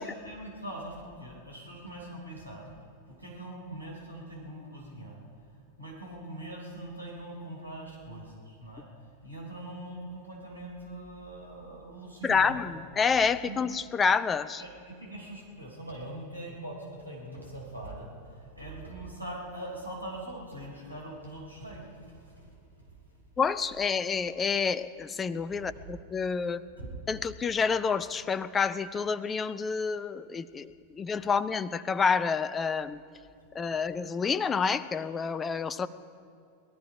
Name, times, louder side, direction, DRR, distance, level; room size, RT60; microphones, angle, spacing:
voice 1, 0.0-2.7 3.1-5.2 5.8-8.8 9.2-12.8 13.4-13.6 14.6-22.7 25.5-25.8 26.7-27.0 31.2-31.3, right 1 dB, 90° right, -4 dB, 3.9 m, -42 dB
voice 2, 12.2-14.6 23.4-26.6 27.1-33.0 33.5-35.9, left 5 dB, 20° left, 16 dB, 0.5 m, -28 dB
20.5 x 13.0 x 4.9 m, 2.3 s
figure-of-eight pair, 90°, 0 cm